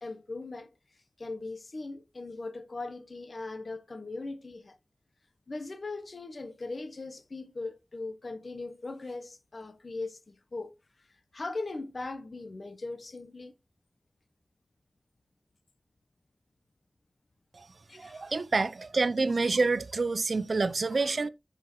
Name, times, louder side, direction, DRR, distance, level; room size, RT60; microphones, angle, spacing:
voice 1, 0.0-0.7 1.2-4.8 5.5-10.7 11.3-13.5 17.9-18.4, left 3 dB, 70° left, 1.0 m, -39 dB
voice 2, 18.0-21.3, right 3 dB, 80° right, 0.5 m, -27 dB
9.6 x 6.3 x 3.1 m
wide cardioid pair, 45°, 0 cm